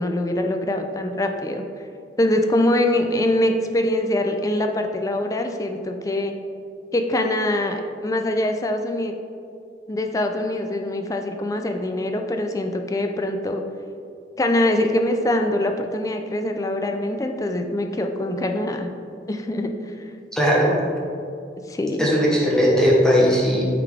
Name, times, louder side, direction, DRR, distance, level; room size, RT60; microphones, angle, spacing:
voice 1, 0.0-1.6 2.2-6.3 6.9-9.1 9.9-13.6 14.4-18.9 19.3-19.9 21.7-22.1, left 1 dB, 20° left, 5 dB, 0.4 m, -23 dB
voice 2, 20.3-20.8 22.0-23.7, equal, 5° left, -4 dB, 0.8 m, -18 dB
9.1 x 3.8 x 3.5 m, 2.4 s
head